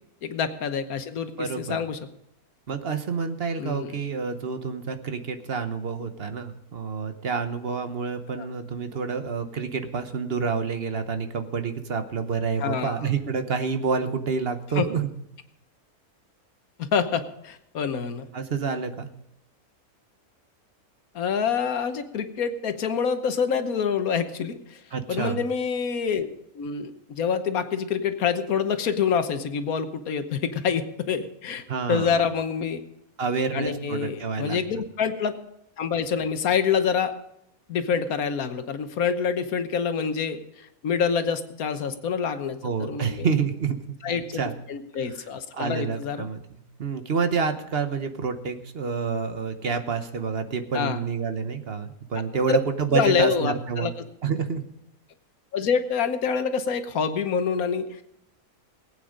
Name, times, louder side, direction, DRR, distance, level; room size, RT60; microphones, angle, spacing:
voice 1, 0.2-2.0 3.6-4.0 8.3-8.5 12.6-13.1 14.7-14.9 16.8-18.3 21.1-24.8 25.1-26.3 26.5-32.8 33.5-35.4 35.8-37.1 37.7-43.3 44.0-44.4 44.7-46.3 50.7-51.0 52.5-52.6 52.9-53.9 55.5-58.0, left 6 dB, 75° left, 10 dB, 1.4 m, -26 dB
voice 2, 1.4-1.8 2.7-15.1 18.3-19.1 24.9-25.4 31.7-32.3 33.2-34.8 42.6-44.5 45.5-53.9 54.2-54.6, right 5 dB, 45° right, 8 dB, 1.1 m, -28 dB
19.0 x 8.8 x 5.1 m, 0.81 s
omnidirectional pair, 1.6 m